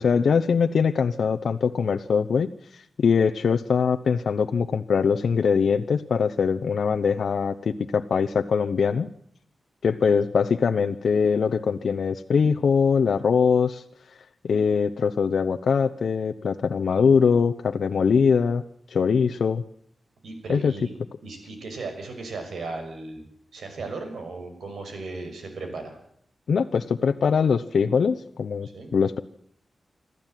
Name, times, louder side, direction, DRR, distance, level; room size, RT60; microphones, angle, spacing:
voice 1, 0.0-9.1 9.8-13.8 14.4-18.6 18.9-19.6 20.5-20.7 26.5-29.2, left 6 dB, 75° left, 7 dB, 0.9 m, -22 dB
voice 2, 20.2-20.9 21.2-23.2 23.5-26.0 28.6-28.9, right 3 dB, 90° right, 6 dB, 6.2 m, -36 dB
26.0 x 13.5 x 9.2 m, 0.67 s
wide cardioid pair, 125°, 0 cm